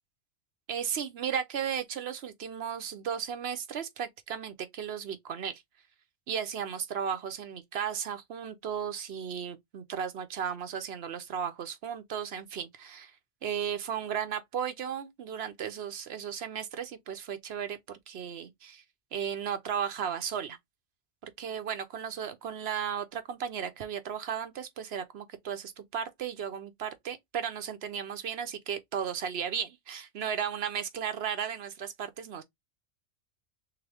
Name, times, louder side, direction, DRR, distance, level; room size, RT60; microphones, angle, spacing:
voice 1, 0.7-5.6 6.3-13.1 13.4-18.8 19.1-20.6 21.2-32.4, right 8 dB, 65° right, 0.9 m, -35 dB
3.6 x 3.5 x 3.3 m
omnidirectional pair, 1.2 m